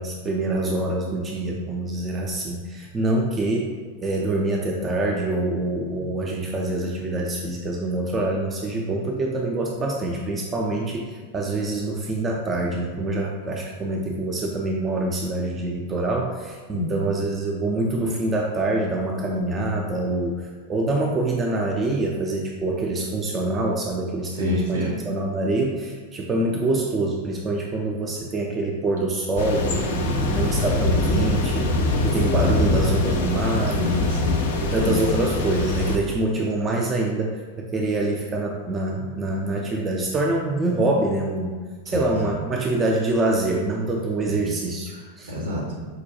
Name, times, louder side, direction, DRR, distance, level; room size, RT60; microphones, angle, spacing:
voice 1, 0.0-3.7 4.0-31.8 32.0-34.1 34.6-41.6 41.9-45.3, right 2 dB, 20° right, 0 dB, 0.3 m, -25 dB
voice 2, 16.7-17.1 24.3-24.9 30.4-30.7 33.7-35.0 41.9-42.4 44.3-44.6 44.9-45.9, left 2 dB, 65° right, -2 dB, 0.9 m, -29 dB
sound 1, 29.4-36.0, left 2 dB, 55° left, 0.4 m, -23 dB
4.8 x 2.2 x 2.7 m, 1.5 s
figure-of-eight pair, 90°, 0 cm